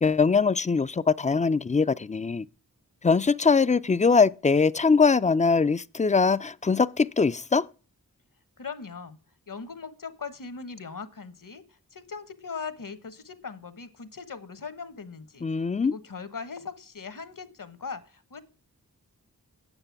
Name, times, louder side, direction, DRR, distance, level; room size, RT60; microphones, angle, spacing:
voice 1, 0.0-2.5 3.0-7.7 15.4-15.9, left 4 dB, 20° left, 0.4 m, -22 dB
voice 2, 8.6-9.2 9.5-18.4, left 5 dB, 60° left, 1.1 m, -40 dB
9.0 x 6.6 x 5.8 m
wide cardioid pair, 50°, 36 cm